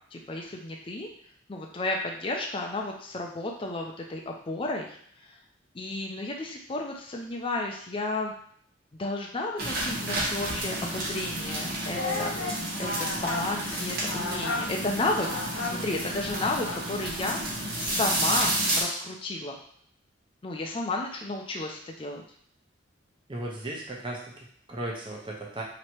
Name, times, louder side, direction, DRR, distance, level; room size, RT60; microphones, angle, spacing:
voice 1, 0.1-1.1 1.5-4.9 5.2-5.3 5.7-8.3 9.0-19.5 20.4-22.2, left 2 dB, 30° left, 0 dB, 0.5 m, -32 dB
sound 1, 9.6-18.8, right 1 dB, 55° right, 1.1 m, -31 dB
Singing, 11.9-17.0, left 3 dB, 75° left, 0.6 m, -34 dB
voice 2, 23.3-25.6, right 1 dB, 25° right, -2 dB, 0.9 m, -36 dB
3.1 x 2.9 x 4.4 m, 0.62 s
head